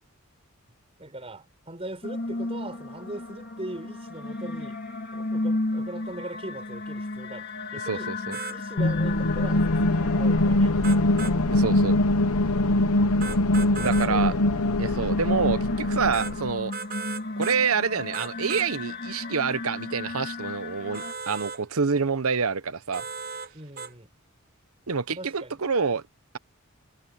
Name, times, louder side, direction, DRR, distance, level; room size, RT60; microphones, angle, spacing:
voice 1, 1.0-4.8 5.1-8.1 8.5-11.0 14.1-14.5 23.5-24.1 25.2-25.6, right 1 dB, 25° right, 4.5 m, -40 dB
sound 1, 2.0-21.1, left 2 dB, 45° left, 2.3 m, -35 dB
voice 2, 7.8-8.4 11.5-12.0 13.7-14.3 14.8-16.7 17.4-23.0 24.9-26.0, right 5 dB, 75° right, 0.9 m, -27 dB
sound 2, 8.3-8.6 10.8-11.4 13.2-14.1 16.1-16.3 16.7-17.6 18.1-18.7 20.9-21.6 22.9-23.5 23.8-23.9, right 5 dB, 40° right, 1.0 m, -36 dB
sound 3, 8.8-16.6, left 1 dB, 80° left, 1.0 m, -23 dB
head